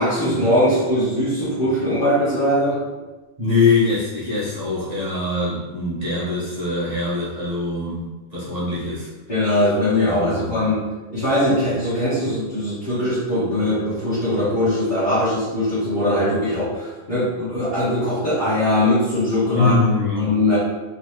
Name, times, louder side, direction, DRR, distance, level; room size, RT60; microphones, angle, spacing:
voice 1, 0.0-2.8 9.3-10.8 11.1-19.8 20.1-20.6, left 1 dB, 40° left, -14 dB, 1.7 m, -21 dB
voice 2, 3.4-9.1 10.0-10.6 19.5-20.3, left 3 dB, 30° right, -8 dB, 1.5 m, -23 dB
3.9 x 3.6 x 3.2 m, 1.2 s
omnidirectional pair, 1.3 m